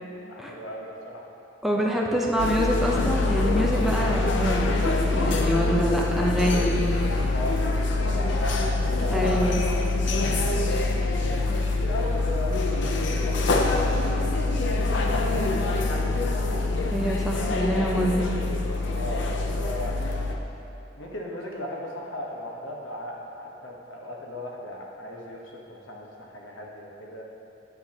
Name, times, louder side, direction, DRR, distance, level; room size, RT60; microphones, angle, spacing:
voice 1, 0.3-1.2 7.3-9.4 10.8-16.9 17.2-17.9 18.9-20.3 21.0-27.2, left 1 dB, 80° left, -1 dB, 1.1 m, -37 dB
voice 2, 1.6-6.8 9.1-9.6 16.9-18.3, equal, ahead, -2 dB, 0.7 m, -26 dB
sound 1, 2.4-20.4, left 2 dB, 65° left, 0.6 m, -25 dB
8.9 x 7.6 x 2.9 m, 2.8 s
head